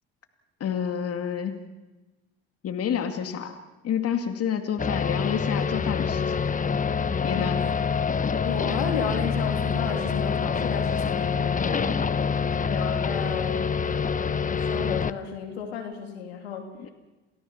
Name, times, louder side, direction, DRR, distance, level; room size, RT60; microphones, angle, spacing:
voice 1, 0.6-1.6 2.6-3.5 3.8-6.2 7.2-7.6 16.8-16.9, left 8 dB, 50° left, 7 dB, 2.2 m, -28 dB
sound 1, 4.8-15.1, left 6 dB, 25° left, 1.0 m, -26 dB
voice 2, 7.4-7.8 8.4-12.0 12.6-16.7, left 7 dB, 85° left, 4 dB, 3.1 m, -33 dB
28.5 x 18.0 x 7.3 m, 1.1 s
hypercardioid pair, 60°, 30 cm